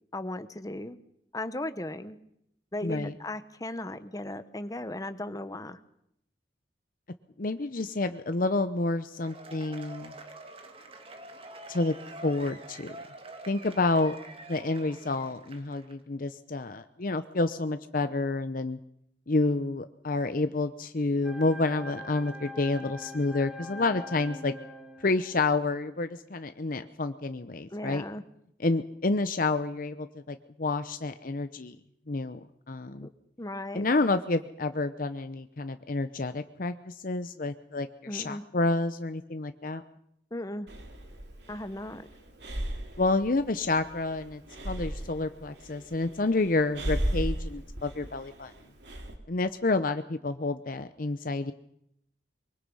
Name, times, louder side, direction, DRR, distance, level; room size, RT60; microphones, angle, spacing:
voice 1, 0.1-1.0 1.3-2.2 2.7-5.8 27.7-28.2 33.0-33.1 33.4-33.9 38.1-38.4 40.3-40.7 41.5-42.1, left 1 dB, 20° left, 11 dB, 1.1 m, -36 dB
voice 2, 2.8-3.1 7.4-10.1 11.7-11.9 12.2-12.9 13.5-14.2 14.5-18.8 19.3-24.5 25.0-28.0 28.6-31.8 32.1-33.1 33.7-39.8 43.0-48.5 49.3-51.5, left 3 dB, 50° left, 10 dB, 0.8 m, -29 dB
Cheering / Applause / Crowd, 9.1-15.9, right 2 dB, 30° right, 1.9 m, -46 dB
sound 1, 21.2-25.7, left 1 dB, 5° right, 1.6 m, -43 dB
Breathing, 40.7-49.1, right 1 dB, 70° right, 3.2 m, -36 dB
24.0 x 23.5 x 5.6 m, 0.75 s
head